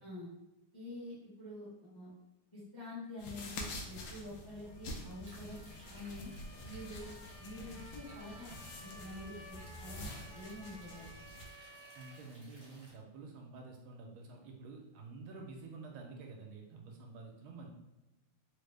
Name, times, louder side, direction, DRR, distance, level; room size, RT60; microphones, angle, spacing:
voice 1, 0.0-0.3 0.7-2.1 2.5-5.6 5.9-6.3 6.6-8.5 8.8-11.1, left 1 dB, 25° left, -8 dB, 0.4 m, -47 dB
sound 1, 3.2-11.5, left 1 dB, 75° left, 1.3 m, -47 dB
Motor vehicle (road) / Siren, 4.6-12.1, equal, 45° left, 1.0 m, -56 dB
sound 2, 5.2-12.9, right 1 dB, 35° right, 0.7 m, -60 dB
voice 2, 11.9-17.7, right 3 dB, 80° right, 1 dB, 1.4 m, -49 dB
3.8 x 2.1 x 3.2 m, 1.0 s
omnidirectional pair, 2.3 m